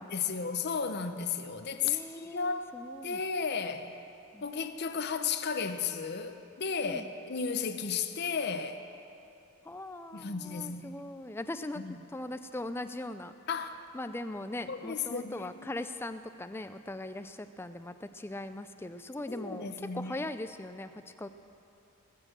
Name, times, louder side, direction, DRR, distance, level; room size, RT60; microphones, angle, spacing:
voice 1, 0.0-2.7 3.0-4.0 4.4-8.8 10.1-11.0 11.8-11.9 13.5-13.8 14.7-15.7 19.3-20.3, left 6 dB, 50° left, 8 dB, 0.7 m, -34 dB
voice 2, 1.8-3.2 4.3-4.4 6.8-7.1 9.6-11.8 12.1-13.3 13.9-21.3, left 1 dB, 10° left, 10 dB, 0.3 m, -40 dB
19.5 x 6.6 x 7.6 m, 2.8 s
head